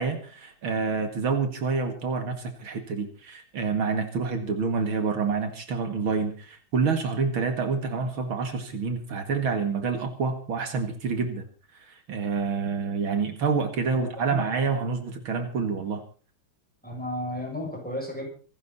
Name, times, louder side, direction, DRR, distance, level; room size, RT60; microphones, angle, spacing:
voice 1, 0.0-11.4 11.7-16.0, right 5 dB, 80° right, 7 dB, 2.9 m, -28 dB
voice 2, 13.9-14.5 16.8-18.3, left 1 dB, 5° left, 0 dB, 7.2 m, -33 dB
25.5 x 12.0 x 4.3 m, 0.40 s
omnidirectional pair, 2.2 m